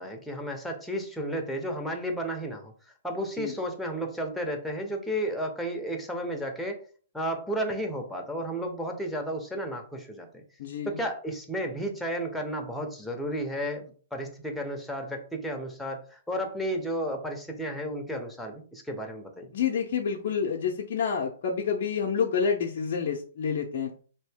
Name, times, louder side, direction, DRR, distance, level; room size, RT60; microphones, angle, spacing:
voice 1, 0.0-6.8 7.1-10.4 10.9-19.5, equal, 5° left, 2 dB, 0.7 m, -33 dB
voice 2, 10.6-11.0 19.5-23.9, left 6 dB, 55° left, 1 dB, 0.5 m, -28 dB
2.7 x 2.6 x 3.5 m, 0.43 s
hypercardioid pair, 130°, 0 cm